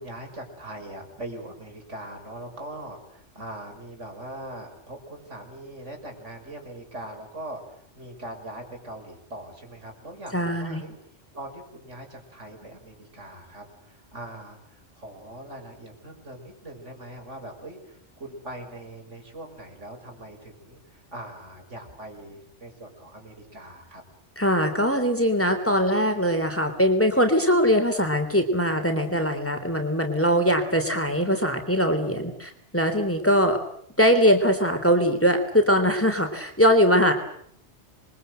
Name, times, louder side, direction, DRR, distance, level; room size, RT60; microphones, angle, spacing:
voice 1, 0.0-11.0 11.3-24.0, right 1 dB, 80° right, 3 dB, 6.5 m, -41 dB
voice 2, 10.3-10.8 24.4-33.6 34.0-37.1, equal, 10° left, 6 dB, 3.3 m, -21 dB
27.5 x 23.5 x 7.9 m, 0.67 s
omnidirectional pair, 1.2 m